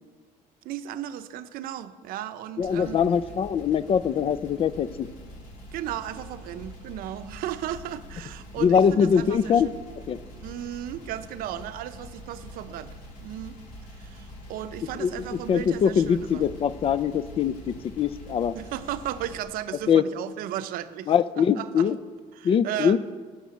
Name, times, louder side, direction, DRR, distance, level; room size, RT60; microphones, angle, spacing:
voice 1, 0.6-3.0 5.7-9.7 10.4-12.9 13.2-13.6 13.9-16.5 18.5-21.9 22.3-23.0, right 11 dB, 80° right, 11 dB, 0.7 m, -35 dB
sound 1, 2.6-19.4, equal, 85° left, 3.4 m, -45 dB
voice 2, 2.6-5.1 8.6-9.7 10.1-10.2 15.0-15.1 15.5-18.6 19.9-20.0 21.1-22.0 22.4-23.0, left 7 dB, 40° left, 17 dB, 0.4 m, -22 dB
12.5 x 6.2 x 8.6 m, 1.5 s
cardioid pair, 140°, 15 cm